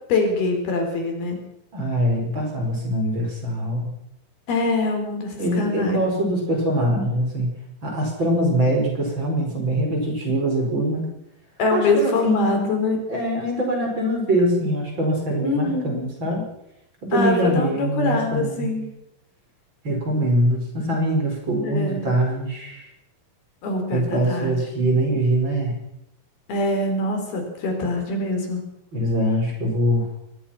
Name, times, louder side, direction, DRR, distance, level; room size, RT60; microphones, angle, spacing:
voice 1, 0.1-1.4 4.5-6.0 11.6-13.0 15.4-16.1 17.1-18.9 21.6-22.1 23.6-24.5 26.5-28.6, left 3 dB, 75° left, 4 dB, 5.9 m, -24 dB
voice 2, 1.7-3.9 5.4-7.5 7.8-11.0 11.7-12.8 13.1-16.5 17.0-18.7 19.8-22.9 23.9-25.8 28.9-30.1, right 1 dB, 30° right, 1 dB, 5.7 m, -23 dB
22.5 x 20.0 x 5.8 m, 0.80 s
omnidirectional pair, 4.5 m